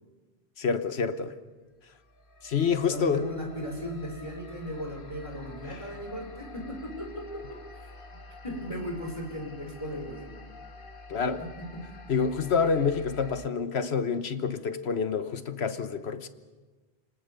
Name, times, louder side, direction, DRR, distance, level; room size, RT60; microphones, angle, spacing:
voice 1, 0.6-1.3 2.4-3.2 11.1-11.4 12.1-16.3, left 6 dB, 80° left, 11 dB, 1.4 m, -27 dB
sound 1, 1.9-13.5, left 1 dB, 55° left, 1.7 m, -47 dB
voice 2, 2.7-7.9 8.4-10.4 11.4-11.8, equal, 30° left, 2 dB, 5.0 m, -37 dB
29.5 x 19.5 x 6.9 m, 1.3 s
omnidirectional pair, 1.1 m